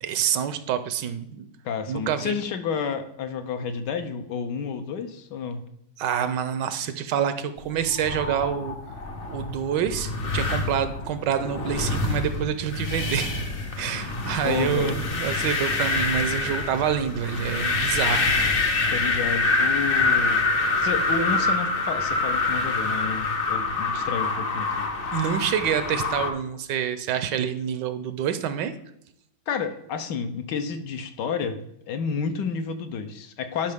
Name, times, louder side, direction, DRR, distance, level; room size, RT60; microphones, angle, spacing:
voice 1, 0.0-1.5 1.9-2.3 6.0-8.8 9.3-13.4 13.8-18.3 25.1-28.7, right 8 dB, 75° right, 11 dB, 1.2 m, -27 dB
voice 2, 1.6-5.6 14.4-15.0 18.9-20.4 20.8-24.9 29.5-31.6 31.9-33.7, left 6 dB, 70° left, 8 dB, 1.3 m, -30 dB
sound 1, 7.8-26.3, left 3 dB, 50° left, 0.7 m, -26 dB
10.5 x 5.5 x 3.5 m, 0.75 s
omnidirectional pair, 2.1 m